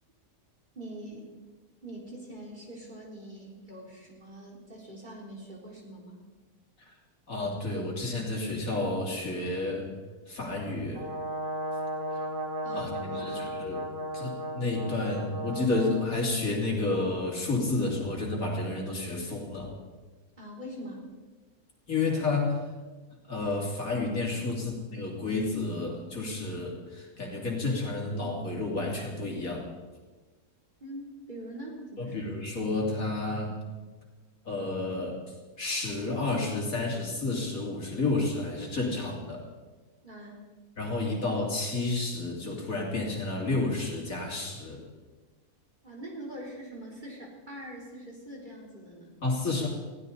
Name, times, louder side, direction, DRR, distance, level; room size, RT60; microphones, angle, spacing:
voice 1, 0.8-1.3 1.8-6.2 12.6-13.5 20.4-21.1 30.8-32.2 40.0-40.5 45.8-49.2, right 1 dB, 30° right, -2 dB, 3.9 m, -43 dB
voice 2, 7.3-9.9 10.3-11.0 12.7-13.8 14.1-19.8 21.9-22.6 23.3-29.7 32.0-33.6 34.5-35.2 35.6-39.5 40.8-44.8 49.2-49.7, left 2 dB, 60° left, -1 dB, 3.4 m, -30 dB
Brass instrument, 10.9-16.1, right 1 dB, 55° right, 2.8 m, -35 dB
21.5 x 15.5 x 4.1 m, 1.3 s
omnidirectional pair, 1.6 m